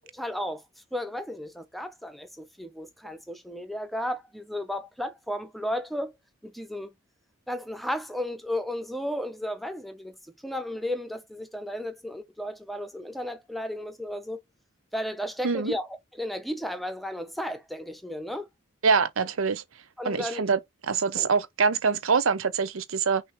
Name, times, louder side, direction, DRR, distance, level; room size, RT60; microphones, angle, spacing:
voice 1, 0.1-0.6 0.9-6.2 6.4-6.9 7.5-14.4 14.9-18.5 20.0-20.4 21.1-21.3, left 1 dB, ahead, 0.7 m, -34 dB
voice 2, 18.8-19.6 20.0-20.6 20.9-23.2, right 5 dB, 85° right, 0.7 m, -24 dB
6.1 x 2.8 x 3.0 m
head